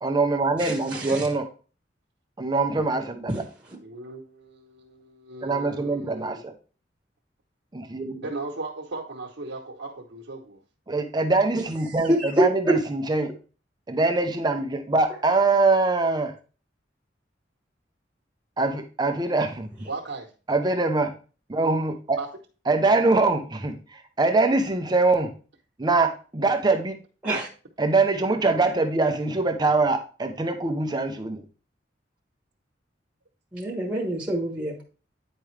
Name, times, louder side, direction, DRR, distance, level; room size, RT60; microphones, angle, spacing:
voice 1, 0.0-1.5 2.4-3.3 5.4-6.5 7.7-8.3 10.9-13.3 13.9-16.3 18.6-19.7 20.5-21.1 21.5-22.2 22.7-25.3 25.8-27.0 27.8-31.4, right 3 dB, 25° right, 6 dB, 0.5 m, -23 dB
voice 2, 0.6-1.3 3.3-3.4 11.6-11.7 12.0-12.7 27.2-27.5 33.5-34.8, right 1 dB, 5° right, 1 dB, 1.1 m, -26 dB
voice 3, 3.8-6.4 8.2-10.6 19.9-20.3 22.2-22.3, right 3 dB, 80° right, -3 dB, 1.0 m, -37 dB
8.9 x 4.8 x 3.2 m, 0.37 s
head